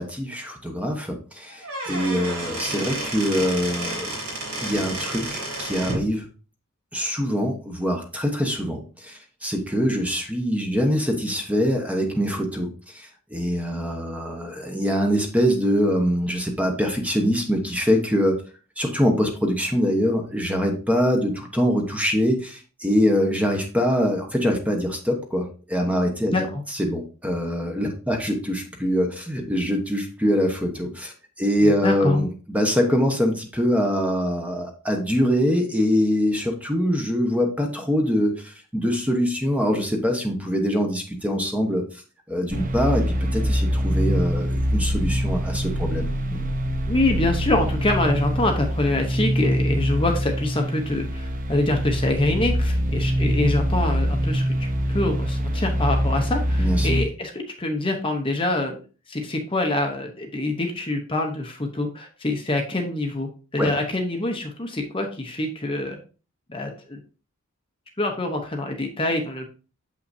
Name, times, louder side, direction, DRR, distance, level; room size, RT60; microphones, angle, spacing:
voice 1, 0.0-4.2 4.6-6.3 6.9-18.4 18.8-26.5 26.7-42.0 42.3-46.1 56.6-56.9 63.6-63.7, equal, 5° right, 3 dB, 1.1 m, -24 dB
Squeak / Wood, 1.5-6.1, right 2 dB, 75° right, 3.2 m, -31 dB
voice 2, 26.3-26.6 31.6-32.2 46.9-58.8 59.1-66.0 66.5-67.0 68.0-69.7, left 2 dB, 25° left, 3 dB, 0.9 m, -25 dB
sound 1, 42.5-57.0, equal, 40° right, 0.7 m, -24 dB
7.6 x 5.7 x 2.7 m, 0.36 s
head